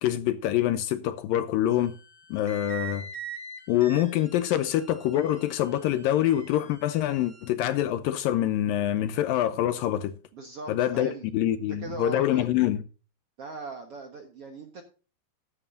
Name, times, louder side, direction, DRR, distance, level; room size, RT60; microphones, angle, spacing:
voice 1, 0.0-2.0 2.3-3.1 3.7-10.2 10.7-12.8, left 12 dB, 80° left, 2.1 m, -25 dB
sound 1, 1.7-7.5, right 5 dB, 25° right, 4.2 m, -44 dB
voice 2, 10.3-11.3 11.8-12.6 13.4-14.8, right 3 dB, 60° right, 1.6 m, -39 dB
14.0 x 11.0 x 2.6 m
omnidirectional pair, 4.7 m